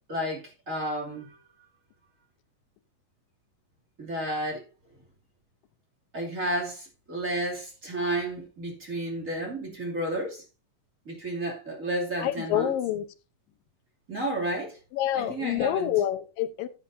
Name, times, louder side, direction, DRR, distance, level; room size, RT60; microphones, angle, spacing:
voice 1, 0.1-1.3 4.0-4.6 6.1-10.4 11.1-12.7 14.1-14.8 15.1-15.9, right 1 dB, 25° right, 2.7 m, -31 dB
voice 2, 12.2-13.1 14.9-16.7, left 11 dB, 85° left, 2.6 m, -27 dB
14.5 x 8.6 x 2.7 m
omnidirectional pair, 3.9 m